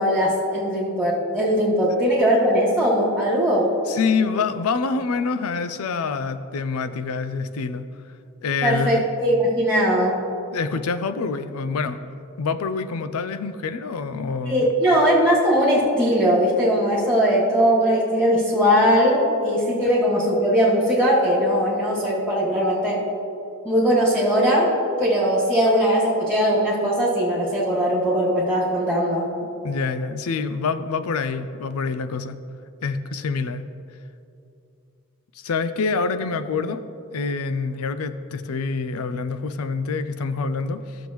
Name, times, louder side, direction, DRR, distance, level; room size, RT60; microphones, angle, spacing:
voice 1, 0.0-3.7 8.6-10.2 14.4-23.0 23.6-29.3, equal, 5° left, -8 dB, 2.1 m, -20 dB
voice 2, 3.9-7.8 8.4-9.0 10.5-14.7 29.6-32.4 32.8-33.6 35.4-36.8 37.1-41.0, left 4 dB, 75° left, 12 dB, 0.4 m, -26 dB
13.5 x 7.1 x 3.1 m, 2.6 s
head